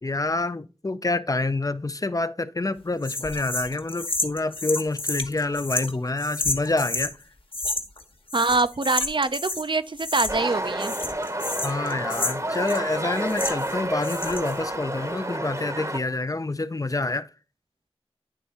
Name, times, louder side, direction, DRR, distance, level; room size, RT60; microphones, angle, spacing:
voice 1, 0.0-7.1 11.6-17.3, left 2 dB, 35° left, 0.5 m, -27 dB
sound 1, 3.0-7.1 7.5-8.0 8.3-9.7 10.0-10.5 10.8-13.7 14.0-14.6, left 2 dB, 55° left, 1.1 m, -30 dB
voice 2, 8.3-10.9, right 3 dB, 50° right, 0.5 m, -24 dB
sound 2, 10.3-16.0, right 1 dB, 30° right, 0.9 m, -30 dB
10.0 x 3.4 x 4.2 m
wide cardioid pair, 45°, 11 cm